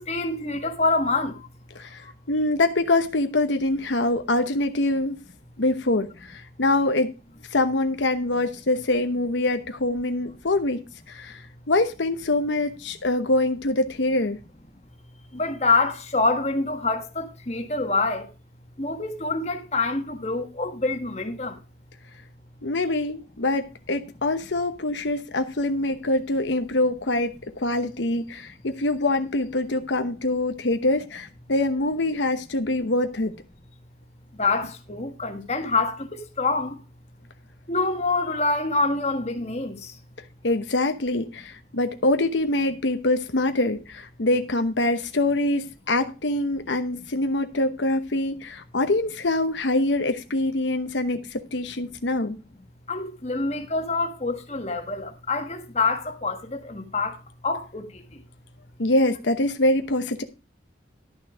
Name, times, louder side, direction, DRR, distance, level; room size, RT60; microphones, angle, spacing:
voice 1, 0.0-1.4 15.3-18.2 18.8-21.5 34.4-36.7 37.7-39.7 52.9-57.2 57.4-57.8, left 3 dB, 35° left, 1.6 m, -26 dB
voice 2, 1.8-5.2 5.6-7.1 7.5-10.8 11.1-14.4 22.6-33.3 40.4-52.4 58.8-60.2, left 2 dB, 85° left, 1.0 m, -24 dB
11.5 x 6.2 x 5.0 m
head